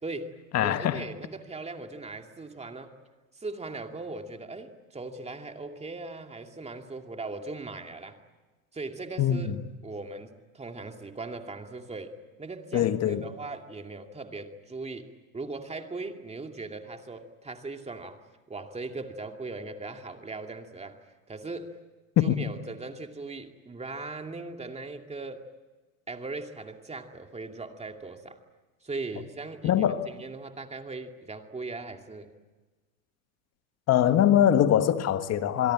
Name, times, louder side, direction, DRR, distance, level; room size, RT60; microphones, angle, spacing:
voice 1, 0.0-2.9 3.4-8.2 8.7-9.5 9.8-21.8 22.2-25.5 26.1-28.4 28.8-32.3, right 3 dB, 15° right, 2.4 m, -39 dB
voice 2, 0.5-1.0 9.2-9.6 12.7-13.3 22.2-22.5 29.6-30.1 33.9-35.7, left 10 dB, 35° left, 1.7 m, -23 dB
27.0 x 22.5 x 8.8 m
hypercardioid pair, 100°, 42 cm